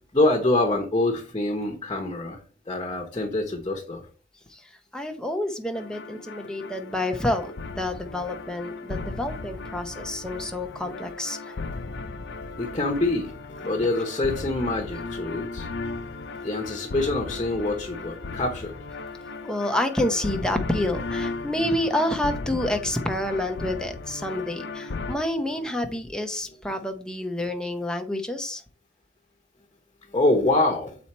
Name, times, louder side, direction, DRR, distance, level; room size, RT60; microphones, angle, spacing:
voice 1, 0.1-2.4 2.7-4.1 12.6-15.7 16.4-18.7 30.1-31.0, left 2 dB, 25° left, 2 dB, 1.0 m, -25 dB
voice 2, 4.5-11.5 13.8-13.9 19.4-28.6, left 1 dB, 5° left, 5 dB, 0.7 m, -28 dB
sound 1, 5.7-25.2, left 3 dB, 60° left, 0.5 m, -36 dB
7.3 x 4.2 x 4.3 m, 0.40 s
head